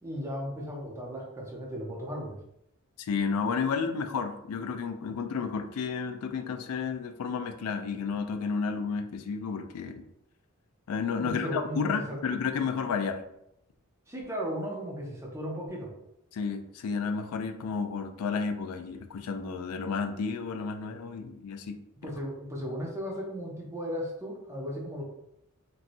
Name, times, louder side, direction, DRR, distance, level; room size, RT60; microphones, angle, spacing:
voice 1, 0.0-2.4 11.2-12.2 14.1-15.9 22.0-25.0, equal, 15° right, -2 dB, 0.6 m, -36 dB
voice 2, 3.0-10.0 10.9-13.2 16.3-21.8, left 5 dB, 90° left, 7 dB, 0.3 m, -32 dB
3.0 x 2.7 x 2.6 m, 0.78 s
head